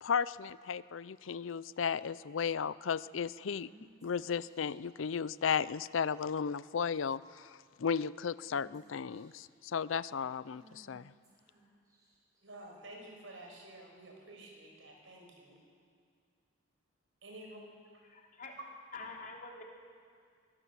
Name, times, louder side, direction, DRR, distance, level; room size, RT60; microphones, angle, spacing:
voice 1, 0.0-3.7 4.0-11.1, left 6 dB, 80° left, 18 dB, 0.5 m, -35 dB
Female speech woman speaking / Whispering, 3.4-4.8 5.9-6.3 6.7-6.9 7.2-7.7 8.4-9.5 10.4-12.4, right 1 dB, 20° right, 6.5 m, -63 dB
voice 2, 12.4-15.6 17.2-17.6, right 1 dB, 80° right, 1 dB, 5.7 m, -51 dB
voice 3, 18.0-18.5 18.9-19.6, left 3 dB, 45° left, 0 dB, 3.2 m, -46 dB
23.5 x 17.5 x 7.5 m, 2.1 s
head